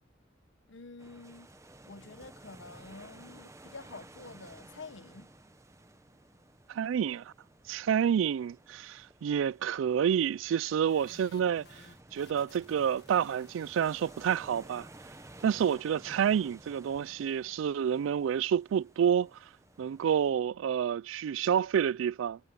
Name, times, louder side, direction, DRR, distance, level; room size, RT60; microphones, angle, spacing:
voice 1, 0.7-1.5 1.9-5.3, left 3 dB, 75° left, 1.0 m, -48 dB
sound 1, 1.0-20.3, right 2 dB, 15° right, 0.9 m, -54 dB
voice 2, 6.7-7.3 7.7-11.9 12.1-14.9 15.4-19.5 19.8-22.4, right 8 dB, 85° right, 0.3 m, -29 dB
sound 2, 10.8-15.8, left 6 dB, 55° left, 1.6 m, -61 dB
head